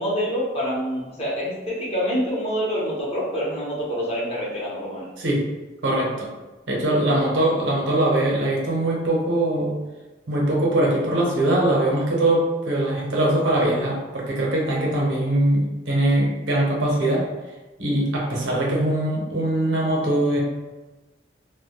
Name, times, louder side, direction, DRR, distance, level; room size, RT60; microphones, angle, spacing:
voice 1, 0.0-5.1, equal, 35° left, -6 dB, 0.7 m, -26 dB
voice 2, 5.2-5.5 5.8-6.3 6.7-9.8 10.3-17.3 17.8-20.4, right 1 dB, 85° right, -3 dB, 0.7 m, -22 dB
2.1 x 2.0 x 2.8 m, 1.1 s
head